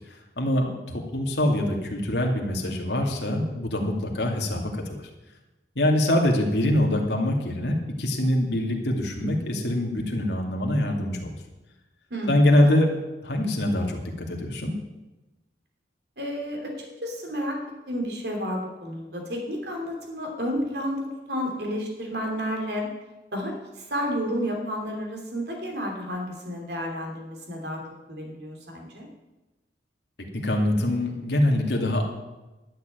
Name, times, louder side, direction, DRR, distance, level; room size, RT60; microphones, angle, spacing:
voice 1, 0.0-5.0 5.8-11.3 12.3-12.9 13.2-14.7 30.3-32.0, left 1 dB, 70° left, 1 dB, 2.4 m, -24 dB
voice 2, 12.1-12.5 16.2-17.6 17.9-22.9 23.3-27.8 28.1-29.1, equal, 65° right, 1 dB, 3.1 m, -31 dB
12.0 x 6.8 x 9.3 m, 1.1 s
head